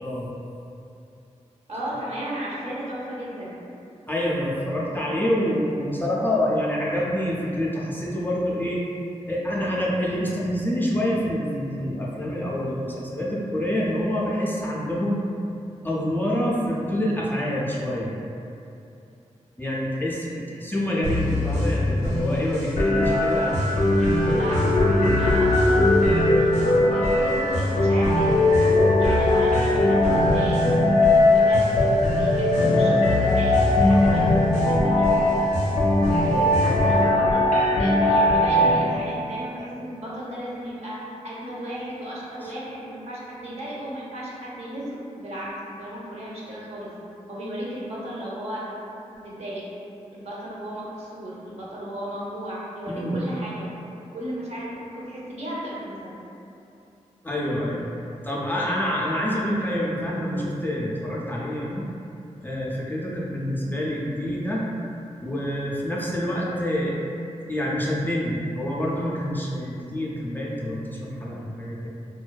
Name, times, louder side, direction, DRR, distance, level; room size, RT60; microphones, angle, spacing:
voice 1, 0.0-0.3 4.1-8.8 9.3-15.2 15.8-18.2 19.6-23.6 42.4-42.5 52.9-53.2 57.2-57.9 58.2-61.8 62.4-64.7 65.2-66.9 67.5-71.9, equal, 15° left, -5 dB, 0.3 m, -27 dB
voice 2, 1.7-3.6 24.0-25.8 26.3-28.5 29.0-30.6 31.3-31.7 32.1-35.4 35.6-46.9 47.3-48.7 49.2-49.6 50.1-53.7 54.1-56.1, equal, 60° right, -7 dB, 0.6 m, -35 dB
sound 1, 21.0-37.1, left 1 dB, 80° right, 1.0 m, -26 dB
sound 2, 22.8-38.8, left 2 dB, 90° left, 0.4 m, -20 dB
2.5 x 2.2 x 2.2 m, 2.7 s
wide cardioid pair, 80°, 12 cm